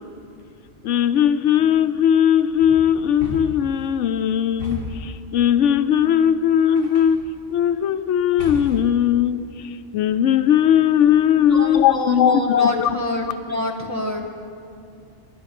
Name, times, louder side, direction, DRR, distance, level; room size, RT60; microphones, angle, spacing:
voice 1, 0.8-7.2 7.5-9.4 9.9-12.9, left 9 dB, 80° left, 0.9 m, -18 dB
sound 1, 2.6-3.8 4.6-5.1 6.8-7.3 8.4-9.0, left 3 dB, 50° right, 2.5 m, -33 dB
voice 2, 11.3-14.2, left 1 dB, 15° right, 1.2 m, -27 dB
19.0 x 11.0 x 6.0 m
omnidirectional pair, 1.2 m